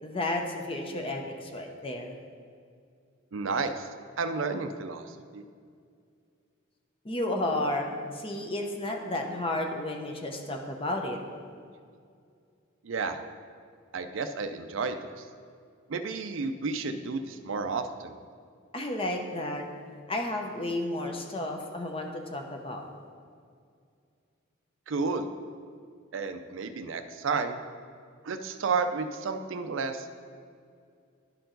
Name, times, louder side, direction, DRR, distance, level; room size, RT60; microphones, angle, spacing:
voice 1, 0.0-2.1 7.0-11.2 18.7-19.7 20.1-22.8, left 1 dB, 25° left, 3 dB, 0.7 m, -32 dB
voice 2, 3.3-3.9 4.2-5.4 12.8-13.2 13.9-15.3 15.9-18.1 24.9-25.3 26.1-27.6 28.2-30.2, right 4 dB, 70° right, 8 dB, 0.5 m, -32 dB
11.0 x 4.6 x 3.9 m, 2.3 s
head